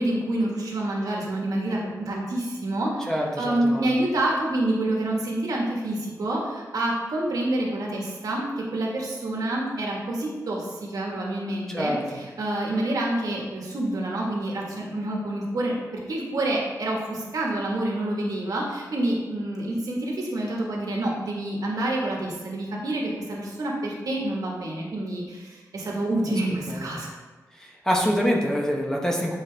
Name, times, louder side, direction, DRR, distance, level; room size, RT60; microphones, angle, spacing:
voice 1, 0.0-3.1 3.4-15.7 16.1-27.1, right 1 dB, 70° right, -2 dB, 1.4 m, -27 dB
voice 2, 3.1-4.0 11.7-12.0 26.7-26.8 27.6-29.3, equal, 10° left, -2 dB, 0.8 m, -25 dB
8.3 x 4.6 x 3.3 m, 1.3 s
wide cardioid pair, 165°, 6 cm